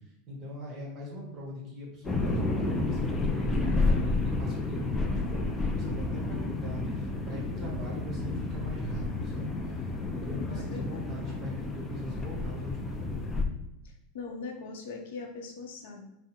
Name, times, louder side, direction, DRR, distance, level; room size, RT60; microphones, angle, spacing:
voice 1, 0.3-9.8 10.1-13.4, left 1 dB, 25° right, -3 dB, 1.1 m, -40 dB
sound 1, 2.0-13.4, left 2 dB, 10° left, 0.3 m, -31 dB
voice 2, 10.2-11.1 14.1-16.0, left 4 dB, 75° left, 2 dB, 0.7 m, -41 dB
3.6 x 2.0 x 4.3 m, 0.86 s
supercardioid pair, 165°, 0 cm